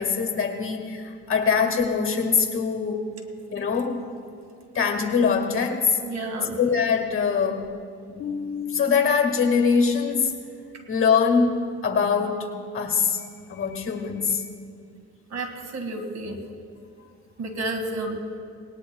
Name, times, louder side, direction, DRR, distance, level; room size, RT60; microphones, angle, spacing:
voice 1, 0.0-3.1 3.5-4.0 4.7-6.0 6.6-7.7 8.1-10.3 10.9-14.4, left 5 dB, 45° left, 4 dB, 1.7 m, -23 dB
voice 2, 6.0-6.6 15.3-16.4 17.4-18.2, right 2 dB, 65° right, 5 dB, 1.9 m, -31 dB
19.0 x 19.0 x 2.2 m, 2.3 s
cardioid pair, 90°, 30 cm